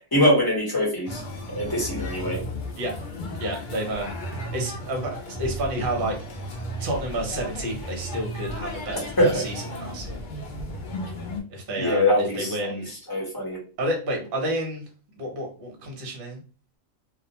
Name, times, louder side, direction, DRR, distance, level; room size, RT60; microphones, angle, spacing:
voice 1, 0.1-1.2 1.5-2.4 9.2-9.4 11.8-12.7 13.1-13.6, left 1 dB, 20° left, -3 dB, 0.9 m, -22 dB
sound 1, 1.0-11.4, left 1 dB, 55° left, 0.5 m, -34 dB
voice 2, 3.4-4.1 4.5-6.2 6.8-10.2 11.5-12.9 13.8-14.8 15.2-16.4, right 1 dB, 50° right, 1 dB, 0.9 m, -30 dB
2.4 x 2.1 x 2.8 m, 0.38 s
omnidirectional pair, 1.4 m